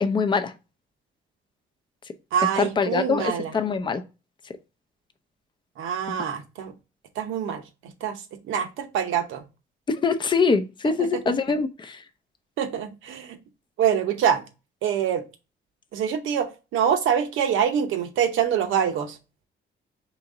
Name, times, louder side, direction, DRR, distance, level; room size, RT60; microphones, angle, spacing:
voice 1, 0.0-0.5 2.6-4.0 6.1-6.2 9.9-12.0, left 5 dB, 25° left, 8 dB, 0.5 m, -24 dB
voice 2, 2.3-3.5 5.8-6.7 7.2-8.2 8.5-9.4 11.0-11.2 12.6-13.4 13.8-14.4 14.8-15.2 15.9-19.2, right 8 dB, 80° right, 7 dB, 0.8 m, -25 dB
4.0 x 2.9 x 3.5 m, 0.30 s
cardioid pair, 90°, 20 cm